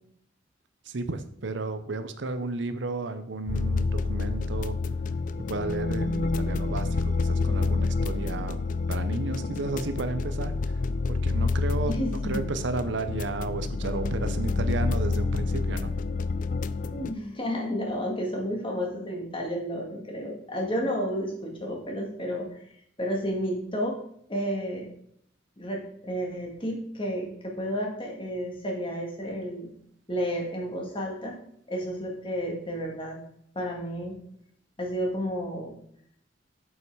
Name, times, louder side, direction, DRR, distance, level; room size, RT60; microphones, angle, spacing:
voice 1, 0.9-4.8 5.5-8.6 8.9-10.5 11.1-11.9 12.2-15.9, right 3 dB, 70° right, 10 dB, 0.7 m, -33 dB
sound 1, 3.5-17.1, left 3 dB, 45° left, 0.4 m, -28 dB
voice 2, 11.9-12.5 16.9-22.6 23.0-24.0 24.3-24.9 25.6-29.7 30.1-31.4 31.7-33.2 33.6-34.2 34.8-35.7, equal, 30° left, 0 dB, 2.0 m, -31 dB
7.8 x 5.5 x 4.7 m, 0.69 s
head